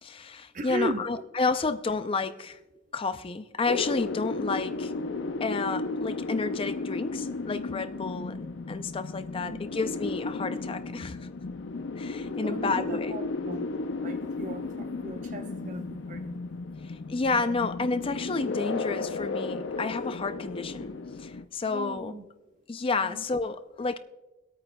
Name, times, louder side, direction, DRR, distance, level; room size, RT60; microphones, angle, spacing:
voice 1, 0.0-2.6 2.9-4.9 5.4-11.2 12.0-13.1 16.8-22.1 22.7-24.0, left 4 dB, 30° left, 0.4 m, -31 dB
voice 2, 0.5-1.1 9.3-9.6 12.4-13.7 14.0-16.4 21.7-22.2 23.0-23.3, right 1 dB, 45° right, 0.8 m, -37 dB
sound 1, 3.7-21.4, left 3 dB, 80° left, 0.6 m, -34 dB
24.5 x 8.8 x 2.2 m
head